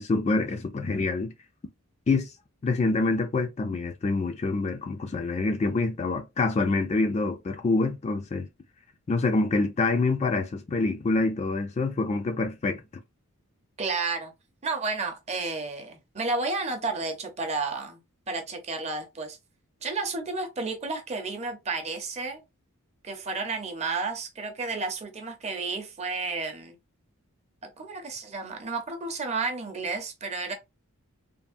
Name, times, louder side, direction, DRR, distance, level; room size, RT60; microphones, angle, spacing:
voice 1, 0.0-1.3 2.1-2.3 2.6-8.5 9.1-12.8, left 3 dB, 30° left, 0.3 m, -26 dB
voice 2, 13.8-14.3 14.6-18.0 18.3-19.4 19.8-22.4 23.0-26.7 27.8-30.5, right 3 dB, 30° right, 0.6 m, -31 dB
3.3 x 2.0 x 2.5 m
head